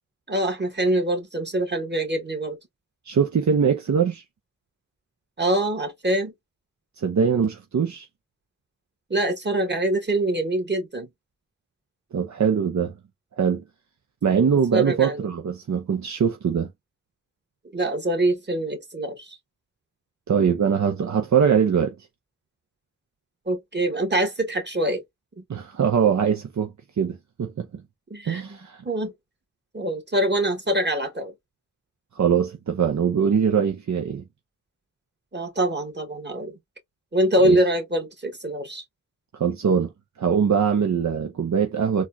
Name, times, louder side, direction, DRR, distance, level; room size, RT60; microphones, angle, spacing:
voice 1, 0.3-2.6 5.4-6.3 9.1-11.1 14.7-15.3 17.7-19.4 23.5-25.0 28.1-28.4 28.9-29.1 29.7-31.3 35.3-36.6 37.1-38.8, right 1 dB, 35° right, 1.7 m, -24 dB
voice 2, 3.1-4.2 7.0-8.1 12.1-12.9 13.4-13.6 14.2-16.7 20.3-21.9 25.5-27.8 28.3-28.8 32.1-34.2 37.4-37.6 39.3-39.9 40.2-42.1, right 7 dB, 65° right, 0.6 m, -22 dB
4.1 x 2.3 x 2.6 m
cardioid pair, 45°, 30 cm